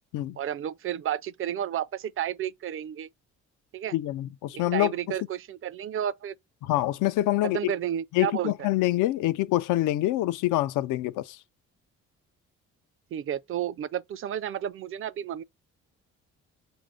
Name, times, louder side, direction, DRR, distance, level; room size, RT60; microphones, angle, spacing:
voice 1, 0.4-3.1 3.7-4.0 4.5-6.3 7.4-8.5 13.1-15.4, right 10 dB, 45° right, 0.4 m, -31 dB
voice 2, 3.9-5.2 6.6-7.7 8.1-11.4, left 15 dB, 90° left, 0.5 m, -26 dB
4.2 x 2.6 x 4.7 m
cardioid pair, 90°, 30 cm